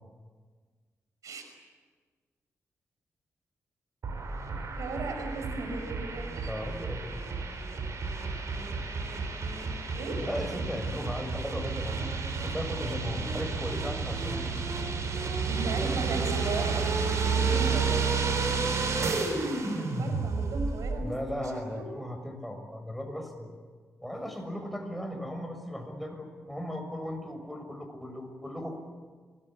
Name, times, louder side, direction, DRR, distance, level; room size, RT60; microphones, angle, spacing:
sound 1, 4.0-20.9, right 4 dB, 70° right, 6.8 m, -31 dB
voice 1, 4.8-6.5 10.0-10.1 15.5-18.0 19.8-21.8, right 3 dB, 85° right, 5 dB, 5.9 m, -37 dB
voice 2, 6.5-7.2 10.2-12.1 12.4-14.5 21.0-23.5 24.0-28.8, equal, ahead, 4 dB, 6.8 m, -37 dB
26.5 x 21.5 x 8.7 m, 1.5 s
cardioid pair, 70°, 5 cm